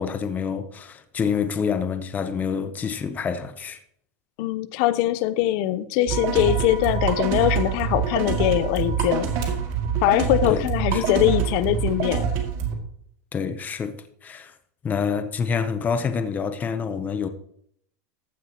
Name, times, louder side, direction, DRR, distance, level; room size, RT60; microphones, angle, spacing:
voice 1, 0.0-3.8 10.5-11.0 13.3-14.0 14.2-14.5 14.8-17.3, left 6 dB, 20° left, 0.8 m, -27 dB
voice 2, 4.4-9.3 10.0-12.3, left 13 dB, 55° left, 0.8 m, -22 dB
sound 1, 6.1-12.7, right 7 dB, 55° right, 2.5 m, -25 dB
14.5 x 9.7 x 3.0 m
supercardioid pair, 150°, 8 cm